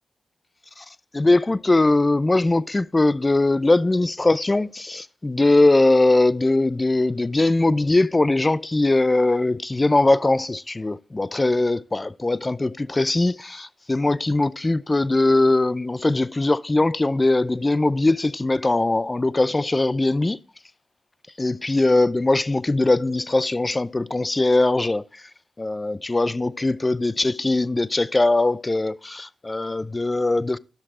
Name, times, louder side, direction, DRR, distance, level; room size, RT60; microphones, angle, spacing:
voice 1, 1.1-20.4 21.4-25.0 25.6-30.6, left 2 dB, 30° left, 0.5 m, -21 dB
13.0 x 6.5 x 3.7 m
supercardioid pair, 45°, 0 cm